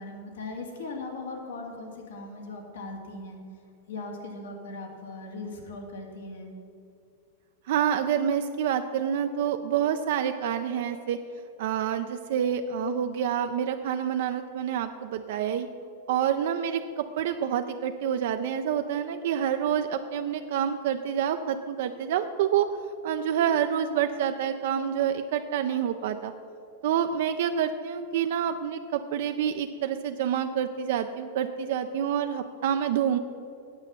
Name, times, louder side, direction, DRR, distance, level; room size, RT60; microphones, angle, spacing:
voice 1, 0.0-3.4 3.9-6.5, left 2 dB, 85° left, 1 dB, 2.0 m, -39 dB
voice 2, 7.7-11.2 11.6-15.7 16.1-22.7 23.0-26.3 26.8-33.2, right 9 dB, 65° right, 7 dB, 0.4 m, -27 dB
8.8 x 7.2 x 6.7 m, 2.6 s
supercardioid pair, 150°, 0 cm